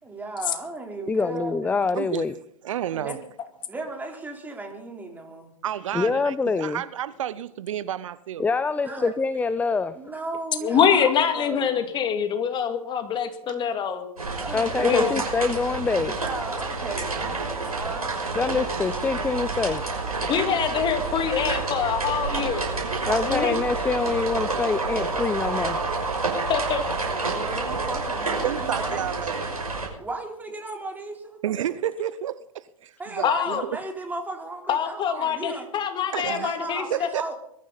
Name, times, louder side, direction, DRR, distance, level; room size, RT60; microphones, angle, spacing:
voice 1, 0.0-1.9 2.9-3.2 3.7-5.5 8.8-9.1 9.9-11.8 14.3-15.3 16.2-18.3 20.6-20.7 27.3-29.1 30.0-31.7 33.0-35.7 36.2-37.3, right 2 dB, 10° right, 3.7 m, -35 dB
voice 2, 1.1-2.3 5.9-6.8 8.4-9.9 14.5-16.2 18.3-19.8 23.0-25.8, left 4 dB, 10° left, 0.5 m, -25 dB
voice 3, 2.6-3.2 5.6-8.4 13.5-13.6 19.7-20.3 22.8-23.3 25.1-25.2 27.2-27.4 28.4-29.4 31.4-33.6 35.2-35.3 36.1-36.5 36.9-37.2, right 11 dB, 60° right, 0.7 m, -31 dB
voice 4, 10.6-14.1 14.8-15.1 20.3-22.6 23.3-23.6 26.5-26.8 33.2-33.6 34.7-37.1, left 8 dB, 25° left, 2.3 m, -24 dB
sound 1, 14.2-29.9, right 3 dB, 85° right, 6.0 m, -29 dB
21.5 x 14.5 x 4.1 m
figure-of-eight pair, 105°, 19 cm